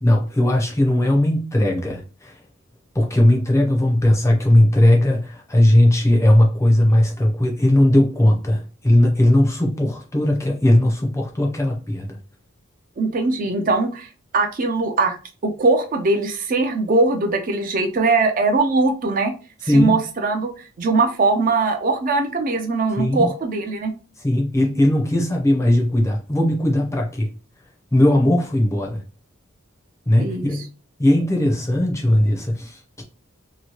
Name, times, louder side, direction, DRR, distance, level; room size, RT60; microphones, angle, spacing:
voice 1, 0.0-2.3 2.9-12.2 19.7-20.0 23.0-23.3 24.2-27.3 27.9-29.0 30.1-30.7 31.0-33.0, left 1 dB, 15° left, 0.5 m, -18 dB
voice 2, 13.0-14.1 14.3-15.2 15.4-19.3 19.6-23.9 30.2-30.6, right 3 dB, 40° right, 0.4 m, -21 dB
2.9 x 2.6 x 2.8 m
head